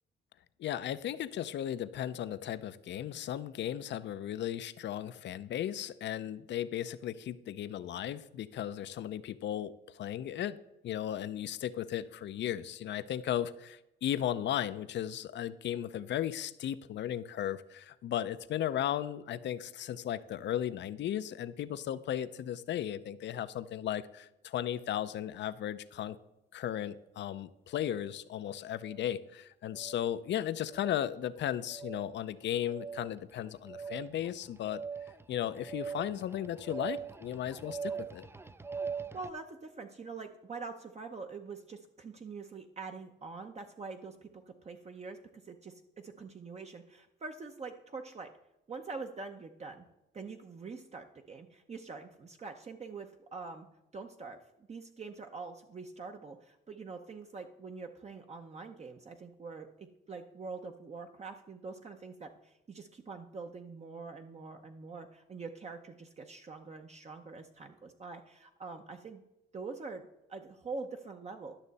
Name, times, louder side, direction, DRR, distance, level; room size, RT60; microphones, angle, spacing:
voice 1, 0.6-10.6 10.8-26.2 26.5-34.8 35.3-38.3, left 11 dB, 65° left, 14 dB, 0.6 m, -36 dB
sound 1, 27.8-28.0 28.7-29.1 29.7-30.1 30.7-31.1 31.7-32.1 32.7-39.3, right 5 dB, 10° right, 0.4 m, -42 dB
voice 2, 39.1-45.2 45.4-48.3 48.7-49.8 50.1-53.7 53.9-69.2 69.5-70.0 70.3-71.5, right 4 dB, 35° right, 4 dB, 0.8 m, -44 dB
11.5 x 6.4 x 4.1 m, 0.88 s
cardioid pair, 90°, 20 cm